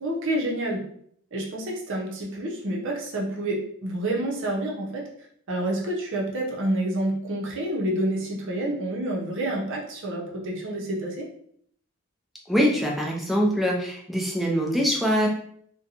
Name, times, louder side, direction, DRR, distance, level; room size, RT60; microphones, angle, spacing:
voice 1, 0.0-0.8 1.3-5.1 5.5-11.2, right 1 dB, 55° right, -2 dB, 0.6 m, -28 dB
voice 2, 12.5-15.3, equal, ahead, -2 dB, 0.4 m, -23 dB
2.5 x 2.2 x 2.8 m, 0.66 s
head